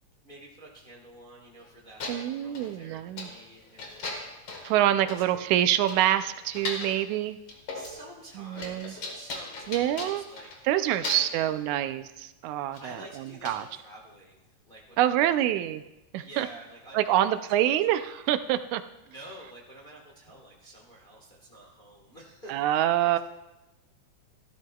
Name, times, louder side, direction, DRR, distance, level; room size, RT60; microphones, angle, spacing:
voice 1, 0.2-4.3 5.0-5.4 7.7-10.5 10.8-11.8 12.8-15.3 16.2-18.0 19.0-23.2, right 1 dB, 30° left, -3 dB, 0.9 m, -49 dB
sound 1, 1.6-1.7 2.0-2.7 3.2-3.4 3.8-4.8 5.1-5.2 5.6-5.7 5.9-7.0 7.5-8.0 8.3-10.7 11.0-11.4 12.7-12.9 13.5-13.6, left 3 dB, 50° left, 2.1 m, -38 dB
voice 2, 2.1-3.3 4.6-7.4 8.4-8.9 9.7-10.2 10.7-13.6 15.0-15.8 16.1-16.5 16.9-18.8 22.5-23.2, right 12 dB, 90° right, 11 dB, 2.0 m, -26 dB
15.5 x 12.5 x 2.3 m, 0.97 s
omnidirectional pair, 3.3 m